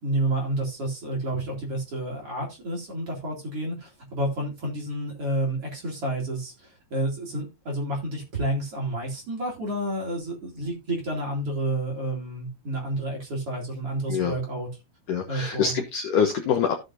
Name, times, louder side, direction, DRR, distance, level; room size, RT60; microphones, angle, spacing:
voice 1, 0.0-14.7 15.3-15.8, right 1 dB, 40° right, -1 dB, 2.7 m, -30 dB
voice 2, 15.1-16.7, left 7 dB, 90° left, 4 dB, 1.8 m, -25 dB
15.0 x 6.6 x 2.6 m, 0.24 s
omnidirectional pair, 5.4 m